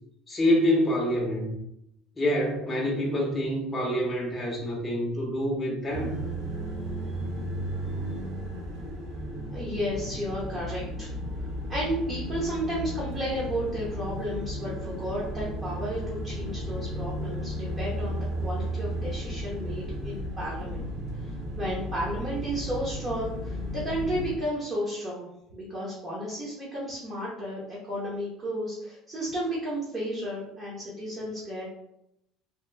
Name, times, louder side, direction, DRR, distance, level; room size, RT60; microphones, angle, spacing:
voice 1, 0.3-1.5 2.2-6.1, left 1 dB, 15° left, -3 dB, 0.7 m, -26 dB
sound 1, 5.9-24.3, equal, 75° right, 0.8 m, -34 dB
voice 2, 9.5-11.1 11.7-20.8 21.2-31.7, equal, 25° right, -6 dB, 0.8 m, -33 dB
2.8 x 2.3 x 3.3 m, 0.79 s
cardioid pair, 145°, 0 cm